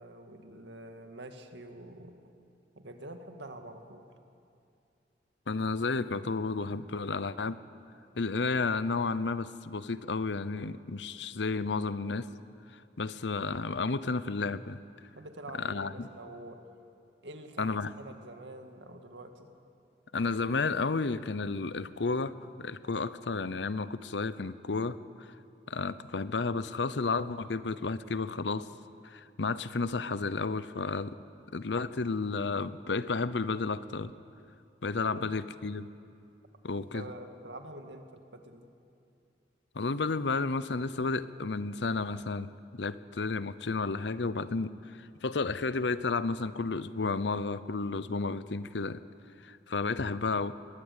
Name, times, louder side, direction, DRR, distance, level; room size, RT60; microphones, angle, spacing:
voice 1, 0.0-2.2 2.7-4.0 15.2-16.6 17.2-19.5 35.0-35.4 36.9-38.7, right 1 dB, 85° right, 6 dB, 2.0 m, -46 dB
voice 2, 5.5-7.6 8.1-12.3 13.0-14.8 15.6-16.1 17.6-17.9 20.1-25.0 25.7-28.7 29.0-31.2 31.5-34.1 34.8-35.9 36.6-37.0 39.7-42.5 42.7-49.0 49.4-50.6, left 4 dB, 75° left, 15 dB, 0.7 m, -32 dB
22.0 x 19.0 x 8.3 m, 2.6 s
head